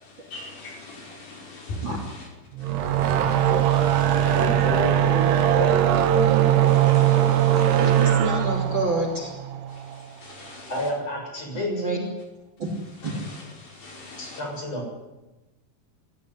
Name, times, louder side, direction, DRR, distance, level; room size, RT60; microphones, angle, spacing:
voice 1, 0.3-1.9 3.0-3.1 3.7-4.2 6.7-7.8 10.2-10.7 13.8-14.4, left 2 dB, 60° left, -1 dB, 6.8 m, -40 dB
sound 1, 2.6-9.9, right 11 dB, 90° right, 3.5 m, -20 dB
voice 2, 4.2-5.7 10.7-12.1 14.2-14.9, left 1 dB, 40° left, 0 dB, 8.4 m, -30 dB
voice 3, 7.8-9.3 11.5-12.0 12.6-12.7 13.0-13.1, right 2 dB, 30° right, 2 dB, 3.2 m, -29 dB
23.0 x 15.0 x 9.5 m, 1.1 s
omnidirectional pair, 4.7 m